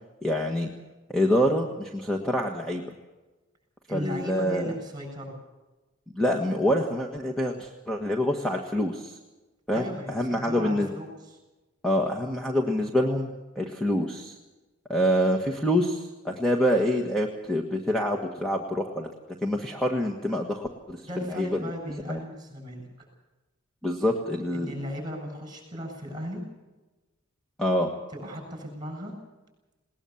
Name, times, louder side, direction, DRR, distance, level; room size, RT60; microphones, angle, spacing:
voice 1, 0.2-0.7 1.1-2.8 3.9-4.7 6.2-9.2 9.7-10.9 11.8-14.3 14.9-19.1 19.4-21.0 21.3-21.7 22.0-22.2 23.8-24.7 27.6-27.9, equal, 5° left, 2 dB, 1.5 m, -26 dB
voice 2, 3.9-5.3 9.7-11.4 21.0-23.1 24.5-26.4 28.1-29.1, equal, 20° right, 4 dB, 7.5 m, -36 dB
20.0 x 19.5 x 7.2 m, 1.1 s
head